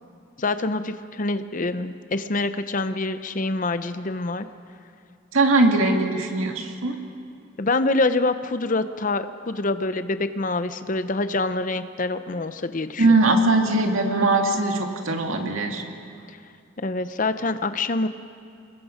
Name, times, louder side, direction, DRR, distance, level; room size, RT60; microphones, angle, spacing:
voice 1, 0.4-4.5 7.6-13.2 16.8-18.1, left 2 dB, 40° left, 11 dB, 0.7 m, -26 dB
voice 2, 5.3-7.0 13.0-15.8, right 2 dB, 90° right, 3 dB, 2.0 m, -20 dB
26.0 x 21.0 x 5.1 m, 2.5 s
head